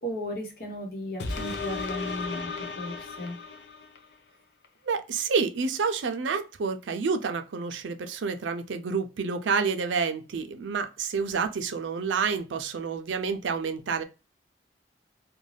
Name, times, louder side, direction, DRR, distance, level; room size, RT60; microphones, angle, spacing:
voice 1, 0.0-3.4, equal, 55° left, 0.9 m, -35 dB
sound 1, 1.2-4.1 4.6-4.7, left 4 dB, 70° left, 0.5 m, -35 dB
voice 2, 4.8-14.0, right 5 dB, 85° right, 0.4 m, -29 dB
2.5 x 2.2 x 3.2 m
head